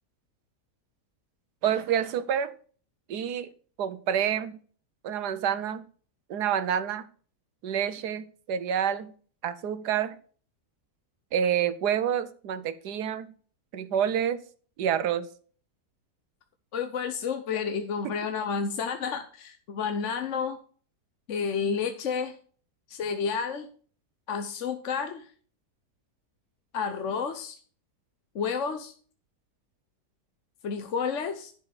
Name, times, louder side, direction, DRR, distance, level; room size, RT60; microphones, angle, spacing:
voice 1, 1.6-2.5 3.1-3.5 3.8-4.6 5.0-5.8 6.3-7.1 7.6-9.1 9.4-10.2 11.3-13.3 13.7-14.4 14.8-15.3 18.0-18.1, right 9 dB, 75° right, 14 dB, 1.4 m, -28 dB
voice 2, 16.7-20.6 21.3-22.3 22.9-23.7 24.3-25.3 26.7-27.6 28.3-28.9 30.6-31.5, left 6 dB, 55° left, 7 dB, 1.0 m, -30 dB
10.5 x 5.3 x 6.9 m, 0.44 s
omnidirectional pair, 1.8 m